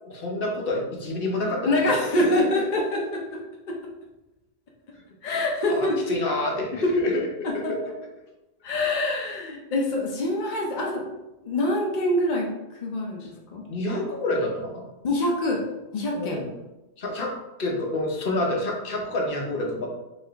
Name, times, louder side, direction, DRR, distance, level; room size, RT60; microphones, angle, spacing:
voice 1, 0.0-2.3 5.7-7.3 13.2-13.3 13.7-14.9 16.1-16.5 17.0-19.9, left 2 dB, 45° left, 0 dB, 0.7 m, -28 dB
voice 2, 1.7-3.4 3.7-3.8 5.2-5.9 7.6-7.7 8.6-11.0 11.4-12.5 12.8-13.6 15.0-15.6 15.9-16.4, left 1 dB, 80° left, -1 dB, 0.4 m, -25 dB
4.7 x 2.9 x 3.4 m, 0.99 s
omnidirectional pair, 1.8 m